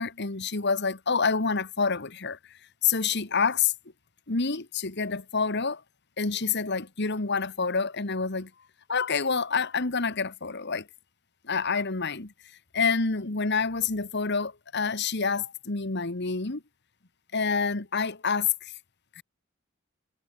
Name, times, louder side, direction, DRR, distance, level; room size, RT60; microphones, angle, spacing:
voice 1, 0.0-2.4 2.8-3.7 4.3-5.8 6.2-8.5 8.9-10.9 11.5-12.3 12.7-16.6 17.3-18.7 19.2-19.3, left 5 dB, 55° left, 1.8 m, -27 dB
head